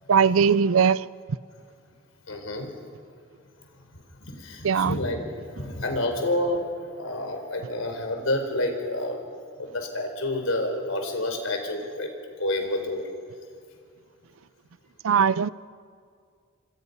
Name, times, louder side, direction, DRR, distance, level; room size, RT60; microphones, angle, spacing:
voice 1, 0.1-1.1 4.6-5.0 15.0-15.5, right 6 dB, 90° right, 0.5 m, -20 dB
voice 2, 2.3-2.7 4.4-5.2 5.6-9.2 9.6-12.1 12.4-13.0, left 1 dB, 85° left, 4.6 m, -28 dB
27.0 x 26.5 x 5.6 m
head